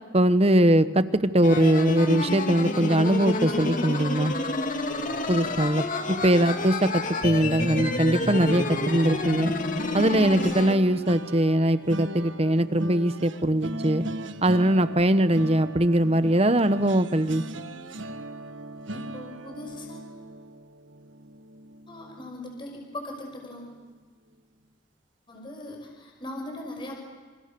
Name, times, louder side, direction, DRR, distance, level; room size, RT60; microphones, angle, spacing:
voice 1, 0.1-4.3 5.3-9.5 9.9-14.1 14.4-17.4, right 1 dB, 30° right, 12 dB, 1.1 m, -22 dB
sound 1, 1.4-10.8, left 2 dB, 45° left, 2.4 m, -29 dB
sound 2, 7.6-22.7 23.1-23.4 23.7-23.9, right 1 dB, 80° right, 1.5 m, -39 dB
voice 2, 18.9-20.1 21.9-23.7 25.3-27.0, left 1 dB, 25° left, 2 dB, 5.8 m, -39 dB
28.5 x 28.0 x 7.0 m, 1.4 s
head